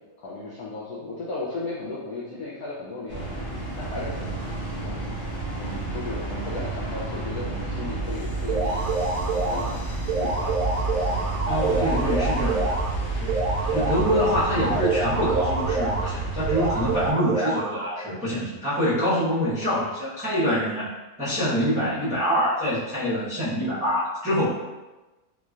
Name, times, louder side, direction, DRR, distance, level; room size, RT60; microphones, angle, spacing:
voice 1, 0.2-3.2 3.8-4.3 4.8-5.2 5.6-8.8 9.3-9.8 10.1-10.6 11.2-12.7 13.0-13.2, left 2 dB, 85° left, -6 dB, 0.8 m, -35 dB
sound 1, 3.1-17.1, right 3 dB, 55° left, 0.5 m, -30 dB
sound 2, 8.5-9.7 10.1-12.9 13.3-16.1 16.5-18.1, right 3 dB, 75° right, 0.9 m, -27 dB
voice 2, 11.5-12.6 13.1-13.4 13.7-20.9 21.2-24.5, equal, 5° right, -12 dB, 0.6 m, -25 dB
3.4 x 3.1 x 2.5 m, 1.1 s
omnidirectional pair, 2.2 m